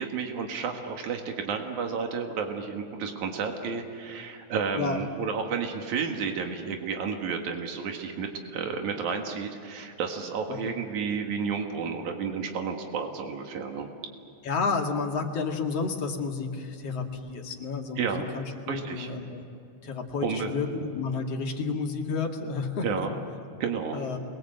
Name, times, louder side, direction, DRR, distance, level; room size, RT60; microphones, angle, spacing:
voice 1, 0.0-13.9 17.9-18.3 18.7-19.1 20.2-20.5 22.8-23.1 23.6-24.0, right 5 dB, 85° right, 3 dB, 3.2 m, -31 dB
voice 2, 14.4-18.1 18.3-19.4 19.8-23.1 23.9-24.2, left 4 dB, 60° left, 1 dB, 3.0 m, -31 dB
29.0 x 23.0 x 7.9 m, 2.6 s
omnidirectional pair, 3.3 m